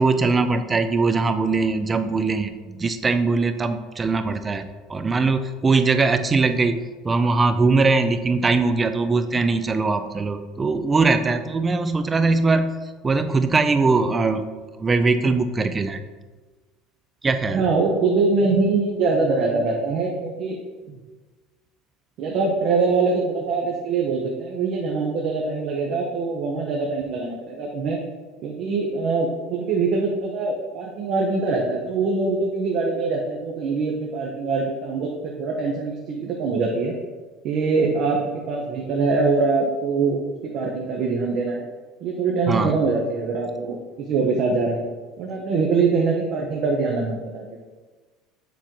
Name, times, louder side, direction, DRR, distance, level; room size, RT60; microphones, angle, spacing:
voice 1, 0.0-6.8 7.0-12.7 13.0-14.5 14.8-16.0 17.2-17.7 42.5-42.8, right 3 dB, 20° right, 9 dB, 0.5 m, -21 dB
voice 2, 17.5-20.6 20.9-21.0 22.2-28.0 28.4-36.9 37.4-41.6 42.0-44.8 45.2-47.5, right 4 dB, 55° right, -1 dB, 0.9 m, -23 dB
7.1 x 3.8 x 4.5 m, 1.3 s
supercardioid pair, 110°, 0 cm